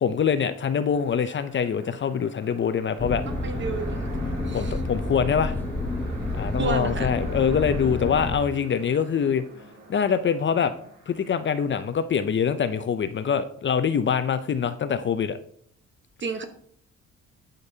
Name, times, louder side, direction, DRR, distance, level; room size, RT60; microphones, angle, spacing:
voice 1, 0.0-3.2 4.5-5.5 6.4-9.4 9.9-10.7 11.1-15.4, left 7 dB, 40° left, 12 dB, 0.5 m, -24 dB
sound 1, 0.7-12.0, right 2 dB, 75° right, 2.2 m, -45 dB
sound 2, 3.0-8.4, left 2 dB, 5° left, 0.8 m, -29 dB
voice 2, 3.2-4.1 4.4-4.8 6.6-7.1 16.2-16.5, right 4 dB, 40° right, 8 dB, 1.1 m, -31 dB
12.0 x 5.2 x 2.8 m, 0.63 s
cardioid pair, 90°, 30 cm